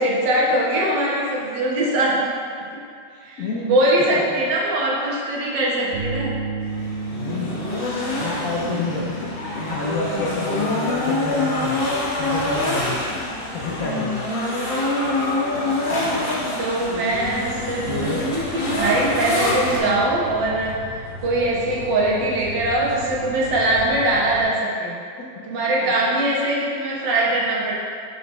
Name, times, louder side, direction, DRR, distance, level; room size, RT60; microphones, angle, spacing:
voice 1, 0.0-2.2 3.3-6.3 16.6-20.7 21.2-24.9 25.4-27.7, right 1 dB, 70° right, -5 dB, 1.8 m, -22 dB
voice 2, 3.1-4.2 7.1-7.6 8.1-9.3 9.5-11.8 12.2-13.0 13.5-14.4 16.0-16.8 17.9-18.2 25.2-25.3 25.8-26.2, left 3 dB, 65° left, -4 dB, 0.9 m, -29 dB
sound 1, 5.9-21.8, right 3 dB, 85° right, 0.5 m, -37 dB
sound 2, 6.6-19.8, left 2 dB, 35° left, 1.0 m, -26 dB
sound 3, 11.3-24.4, left 1 dB, 35° right, 1.3 m, -39 dB
6.2 x 5.8 x 3.1 m, 2.3 s
omnidirectional pair, 2.1 m